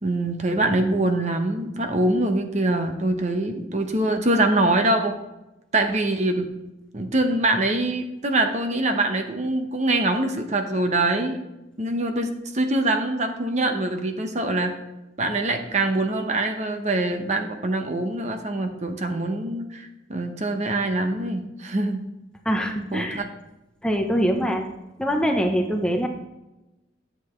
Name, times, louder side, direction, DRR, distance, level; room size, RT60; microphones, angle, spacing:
voice 1, 0.0-5.2 5.7-6.5 6.9-11.4 11.8-14.8 15.2-22.1 22.9-23.2, right 2 dB, 40° right, 6 dB, 0.9 m, -24 dB
voice 2, 22.4-23.2 23.8-24.7 25.0-26.1, equal, 5° left, 2 dB, 0.8 m, -23 dB
11.0 x 7.8 x 3.2 m, 0.95 s
head